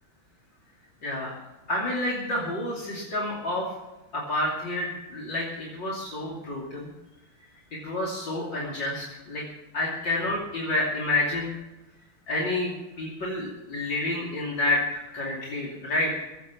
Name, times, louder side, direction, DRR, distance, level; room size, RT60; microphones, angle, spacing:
voice 1, 1.0-1.3 1.7-3.7 4.1-6.9 7.8-9.4 9.7-11.5 12.3-16.3, left 2 dB, 60° left, -4 dB, 3.4 m, -29 dB
22.5 x 8.4 x 5.8 m, 1.0 s
omnidirectional pair, 2.3 m